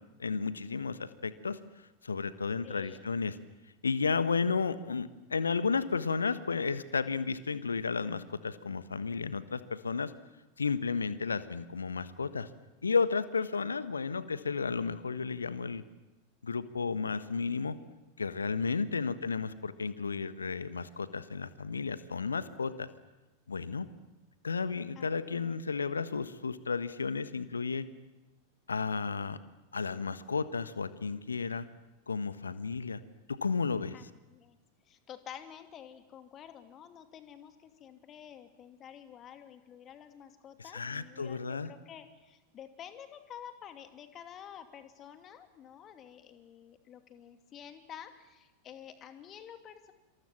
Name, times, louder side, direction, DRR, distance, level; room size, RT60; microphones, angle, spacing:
voice 1, 0.2-1.6 2.0-3.4 3.8-10.1 10.6-12.5 12.8-15.8 16.4-17.8 18.2-22.9 23.5-23.9 24.4-27.9 28.7-29.4 29.7-31.7 32.1-33.0 33.3-33.9 40.7-41.7, left 5 dB, 75° left, 14 dB, 1.4 m, -33 dB
voice 2, 2.6-3.0 24.9-25.6 33.9-34.6 34.8-49.9, left 9 dB, 30° left, 8 dB, 2.7 m, -50 dB
27.0 x 26.5 x 7.6 m, 1.1 s
figure-of-eight pair, 90°, 0 cm